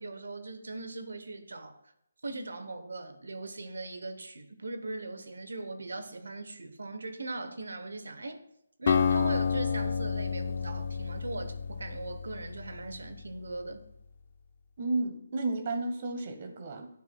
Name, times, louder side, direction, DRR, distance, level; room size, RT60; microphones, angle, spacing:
voice 1, 0.0-1.8 2.2-8.4 8.8-13.9, right 2 dB, 80° right, 0.9 m, -39 dB
Acoustic guitar, 8.9-13.0, left 6 dB, 45° left, 0.4 m, -29 dB
voice 2, 14.8-16.9, right 2 dB, 40° right, 1.0 m, -32 dB
10.5 x 4.7 x 2.3 m
hypercardioid pair, 160°, 0 cm